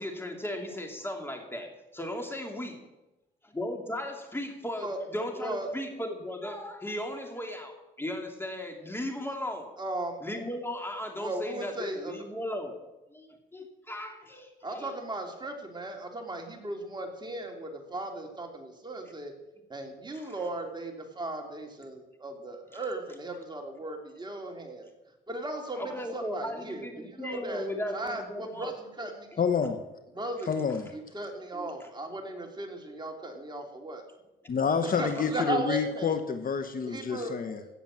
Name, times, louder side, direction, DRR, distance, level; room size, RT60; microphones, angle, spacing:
voice 1, 0.0-2.8 3.4-9.7 10.2-14.9 20.1-20.3 25.8-28.7 37.2-37.7, left 1 dB, 10° left, 3 dB, 3.1 m, -36 dB
voice 2, 5.4-5.7 9.8-10.2 11.2-12.1 14.6-19.3 19.7-24.9 25.3-27.6 27.9-29.4 30.1-30.5 30.9-34.0 34.8-36.1 36.9-37.4, right 2 dB, 20° right, 2 dB, 3.0 m, -36 dB
voice 3, 29.4-29.8 30.5-30.9 34.5-37.6, left 6 dB, 45° left, 9 dB, 1.1 m, -28 dB
16.5 x 7.2 x 7.6 m, 0.97 s
cardioid pair, 90°, 20 cm